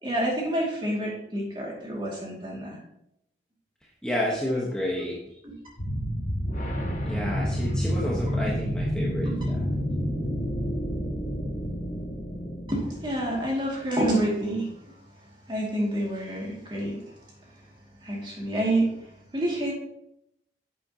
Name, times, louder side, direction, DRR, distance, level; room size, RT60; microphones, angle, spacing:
voice 1, 0.0-2.8 5.4-5.6 8.3-8.5 9.2-9.4 12.7-14.9 15.5-17.1 18.0-19.1 19.3-19.7, right 1 dB, 25° right, -3 dB, 2.3 m, -28 dB
voice 2, 4.0-5.2 7.0-9.6, left 1 dB, 5° left, -5 dB, 1.2 m, -30 dB
sound 1, 5.8-13.5, equal, 45° left, 1.6 m, -29 dB
9.6 x 7.5 x 2.9 m, 0.78 s
head